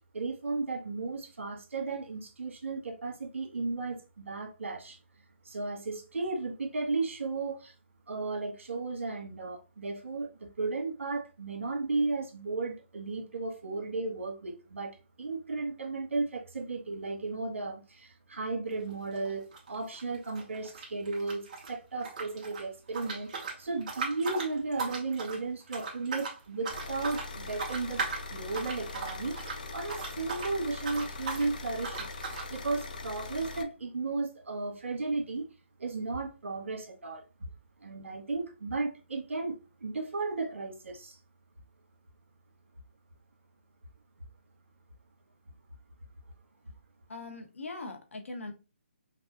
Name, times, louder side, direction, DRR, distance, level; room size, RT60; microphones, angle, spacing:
voice 1, 0.1-5.0 5.4-7.7 8.1-28.0 28.3-32.1 32.5-35.4 35.8-37.2 37.8-41.2, right 3 dB, 70° right, 1.5 m, -34 dB
sound 1, 18.7-18.9 19.1-21.7 22.0-30.5 30.8-31.5 31.8-32.5, right 4 dB, 35° right, 1.1 m, -38 dB
sound 2, 26.7-33.6, left 3 dB, 40° left, 0.5 m, -41 dB
voice 2, 47.1-48.5, left 2 dB, 80° left, 1.2 m, -41 dB
5.4 x 2.3 x 2.7 m
hypercardioid pair, 175°, 7 cm